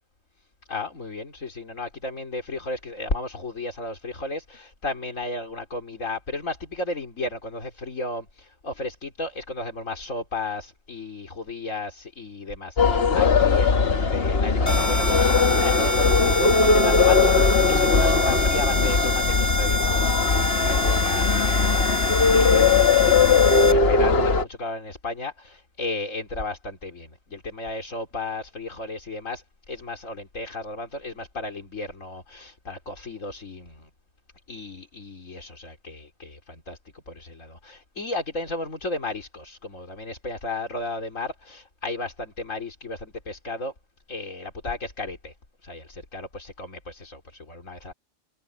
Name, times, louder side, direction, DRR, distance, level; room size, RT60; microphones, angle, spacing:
voice 1, 0.7-33.9 34.5-43.7 44.1-45.3 45.6-47.9, left 2 dB, 85° left, 3.8 m, -34 dB
sound 1, 12.8-24.4, left 4 dB, 50° left, 1.6 m, -19 dB
sound 2, 14.7-23.7, equal, 15° left, 1.4 m, -27 dB
omnidirectional pair, 1.3 m